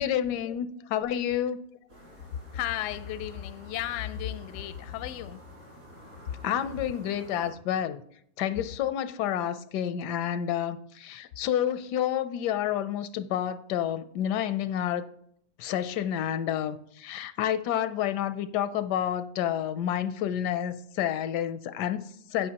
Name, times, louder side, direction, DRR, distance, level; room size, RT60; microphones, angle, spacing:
voice 1, 0.0-1.6 6.4-8.0 8.4-15.1 15.6-22.5, left 10 dB, 85° left, 1.2 m, -29 dB
sound 1, 1.9-7.5, equal, 70° right, 5.2 m, -49 dB
voice 2, 2.5-5.4, left 12 dB, 70° left, 0.7 m, -34 dB
15.5 x 5.7 x 2.9 m
omnidirectional pair, 1.7 m